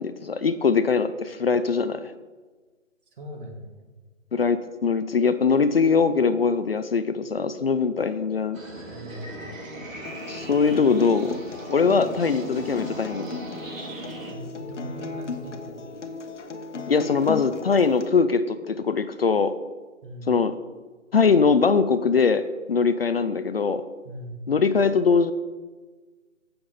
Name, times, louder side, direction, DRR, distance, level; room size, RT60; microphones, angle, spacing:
voice 1, 0.0-2.1 4.3-8.6 10.3-11.4 11.7-13.3 16.9-19.5 20.3-20.6 21.1-22.4 22.7-23.8 24.5-25.3, left 5 dB, 50° left, 12 dB, 0.6 m, -22 dB
voice 2, 3.2-3.9 8.9-9.3 14.3-15.8 20.0-20.4 24.0-24.4, right 1 dB, 40° right, 3 dB, 2.1 m, -39 dB
sound 1, 5.1-19.7, left 2 dB, 10° left, 1.4 m, -47 dB
sound 2, 8.5-14.3, right 1 dB, 80° right, 3.1 m, -38 dB
Acoustic guitar, 10.0-18.1, left 4 dB, 65° left, 1.3 m, -37 dB
15.5 x 6.9 x 4.1 m, 1.3 s
figure-of-eight pair, 160°, 39 cm